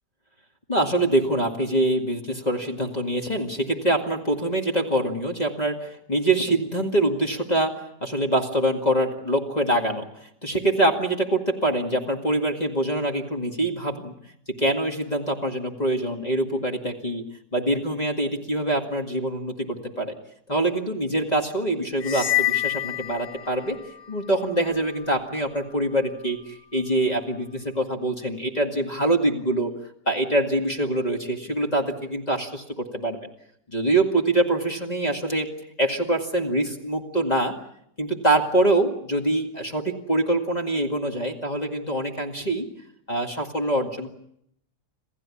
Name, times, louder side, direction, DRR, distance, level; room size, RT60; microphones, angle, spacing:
voice 1, 0.7-10.1 10.4-14.1 14.5-17.2 17.5-20.2 20.5-23.8 24.1-29.7 30.1-33.3 33.7-35.5 35.8-37.5 38.0-42.7 43.1-44.1, right 1 dB, 25° left, 3 dB, 2.2 m, -24 dB
sound 1, 22.0-23.9, left 15 dB, 50° left, 1.4 m, -26 dB
27.5 x 15.5 x 9.9 m, 0.74 s
omnidirectional pair, 1.8 m